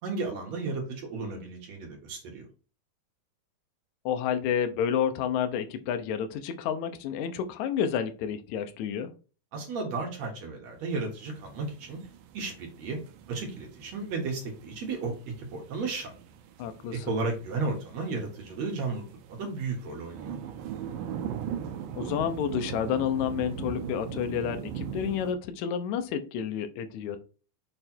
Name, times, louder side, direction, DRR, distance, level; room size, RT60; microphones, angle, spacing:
voice 1, 0.0-2.4 9.5-12.0 12.3-13.0 13.3-16.1 16.9-19.0 19.3-20.4, right 3 dB, 60° right, 1 dB, 2.5 m, -34 dB
voice 2, 4.1-9.1 16.6-17.1 22.0-27.2, left 8 dB, 70° left, 7 dB, 2.0 m, -30 dB
sound 1, 11.1-25.3, right 8 dB, 80° right, 2.2 m, -40 dB
6.8 x 3.3 x 4.4 m, 0.35 s
omnidirectional pair, 3.8 m